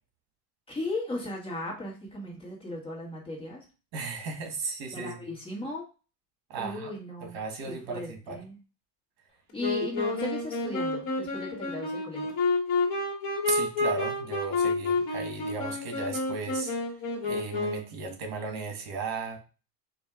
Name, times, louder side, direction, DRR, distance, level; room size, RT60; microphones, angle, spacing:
voice 1, 0.7-3.6 4.9-5.8 6.6-7.4 7.6-8.6 9.5-12.3, left 2 dB, 15° left, -3 dB, 1.3 m, -36 dB
voice 2, 3.9-5.2 6.5-6.9 7.2-8.4 13.5-16.7 17.2-19.4, right 4 dB, 60° right, 4 dB, 1.4 m, -36 dB
Wind instrument woodwind instrument, 9.6-18.0, left 3 dB, 45° left, 1.4 m, -29 dB
4.4 x 2.6 x 3.5 m, 0.33 s
cardioid pair, 150°, 41 cm